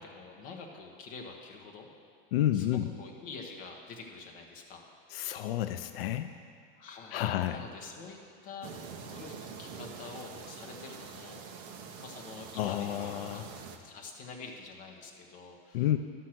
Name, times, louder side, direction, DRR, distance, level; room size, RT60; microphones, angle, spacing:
voice 1, 0.0-1.9 2.5-4.8 6.8-8.2 8.4-11.4 12.0-15.9, left 4 dB, 35° left, 0 dB, 1.0 m, -47 dB
voice 2, 2.3-2.9 5.1-6.4 7.1-7.6 12.6-13.5 15.7-16.0, left 12 dB, 85° left, 10 dB, 0.5 m, -30 dB
sound 1, 8.6-13.8, right 5 dB, 25° right, 0.4 m, -45 dB
11.5 x 6.4 x 5.9 m, 2.4 s
supercardioid pair, 180°, 29 cm